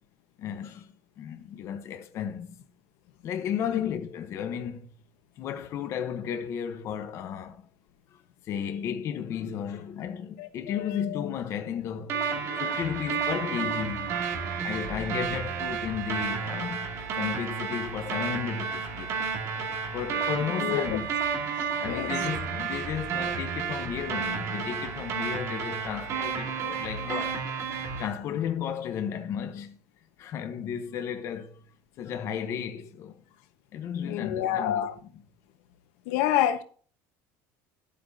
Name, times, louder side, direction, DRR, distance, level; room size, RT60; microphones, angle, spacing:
voice 1, 0.4-0.9 1.2-2.5 3.2-4.9 5.4-7.6 8.1-19.3 19.9-21.1 21.8-27.4 28.0-29.8 30.2-31.6 32.0-33.2 33.7-34.9, left 8 dB, 40° left, 1.0 m, -34 dB
voice 2, 10.4-11.3 20.6-20.9 21.8-22.1 27.1-27.2 34.0-35.0 36.0-36.6, left 11 dB, 80° left, 1.2 m, -28 dB
sound 1, 12.1-28.1, right 6 dB, 40° right, 2.6 m, -31 dB
12.0 x 8.5 x 2.8 m
cardioid pair, 165°, 7 cm